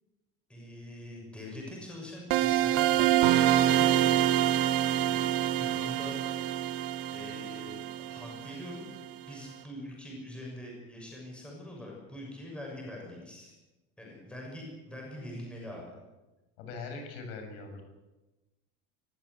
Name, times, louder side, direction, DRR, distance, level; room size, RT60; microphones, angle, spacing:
voice 1, 0.5-4.2 4.9-5.3 5.6-6.8 7.1-8.9 9.3-13.5 14.0-16.0, left 1 dB, 5° left, -2 dB, 6.6 m, -44 dB
sound 1, 2.3-9.0, right 12 dB, 75° right, 2.4 m, -26 dB
voice 2, 16.6-17.9, left 4 dB, 70° left, 5 dB, 6.8 m, -41 dB
24.5 x 15.0 x 8.2 m, 1.1 s
cardioid pair, 175°, 29 cm